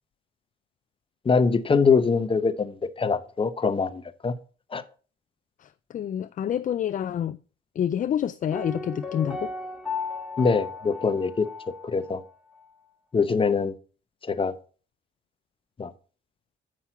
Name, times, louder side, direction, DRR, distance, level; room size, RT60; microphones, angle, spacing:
voice 1, 1.2-4.3 4.7-4.8 10.4-11.5 11.8-12.2 13.1-13.7 14.2-14.5 15.8-15.9, left 5 dB, 25° left, 0.8 m, -23 dB
voice 2, 5.6-7.4 7.8-9.5, left 9 dB, 40° left, 0.4 m, -28 dB
Piano, 8.5-12.3 12.5-12.6, left 4 dB, 5° right, 2.6 m, -35 dB
7.5 x 5.5 x 5.8 m
cardioid pair, 90°, 20 cm